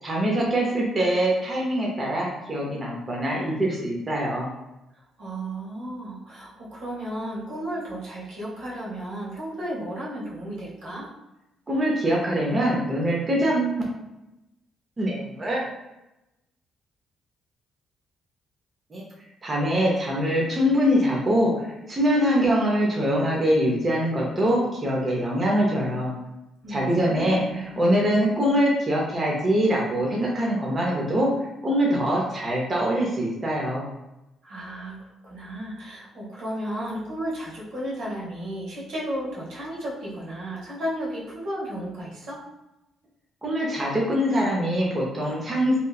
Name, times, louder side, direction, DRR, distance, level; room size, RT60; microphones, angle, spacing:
voice 1, 0.0-4.5 11.7-13.8 15.0-15.6 18.9-19.0 19.4-26.1 26.7-31.3 31.6-33.8 43.4-45.8, equal, 30° right, -3 dB, 0.7 m, -23 dB
voice 2, 5.2-11.1 26.6-27.7 34.4-42.4, right 1 dB, 80° right, -6 dB, 1.1 m, -34 dB
2.9 x 2.3 x 2.3 m, 0.94 s
cardioid pair, 90°, 0 cm